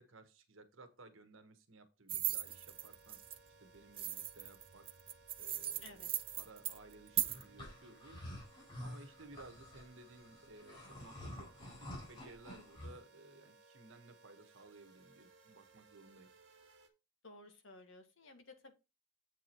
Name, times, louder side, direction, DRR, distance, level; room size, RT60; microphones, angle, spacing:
voice 1, 0.0-3.2 3.6-4.9 5.4-6.1 6.4-8.2 8.8-16.3, right 2 dB, 80° right, 7 dB, 1.4 m, -58 dB
sound 1, 2.1-3.4 4.0-7.4, right 12 dB, 30° right, 0.4 m, -38 dB
sound 2, 2.4-16.9, right 3 dB, 65° right, 1.8 m, -64 dB
voice 2, 5.8-6.1 17.2-18.7, left 2 dB, 75° left, 6 dB, 1.7 m, -56 dB
sound 3, 7.2-13.0, left 1 dB, 25° left, 4.1 m, -50 dB
8.0 x 4.8 x 4.5 m, 0.27 s
head